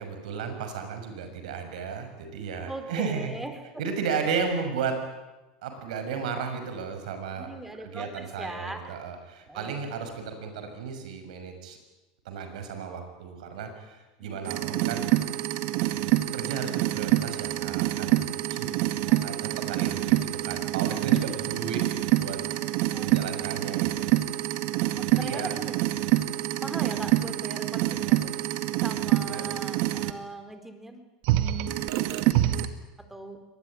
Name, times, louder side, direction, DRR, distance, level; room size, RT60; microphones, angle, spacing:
voice 1, 0.0-3.3 3.8-4.9 5.6-7.5 7.8-11.8 12.2-15.1 16.3-18.8 19.2-20.1 20.4-21.8 22.1-22.4 23.0-24.2 25.1-25.5 29.3-29.4, right 6 dB, 80° right, 7 dB, 6.4 m, -34 dB
voice 2, 2.7-3.6 7.4-9.0 9.5-9.8 14.2-14.5 19.0-19.6 21.3-21.4 22.4-22.5 22.9-23.2 24.9-25.8 26.6-28.3 28.8-31.1 33.1-33.4, right 1 dB, 5° right, 8 dB, 4.3 m, -40 dB
sound 1, 14.5-30.1 31.2-32.7, right 15 dB, 60° right, 1.9 m, -26 dB
24.0 x 20.0 x 10.0 m, 1.1 s
hypercardioid pair, 100°, 4 cm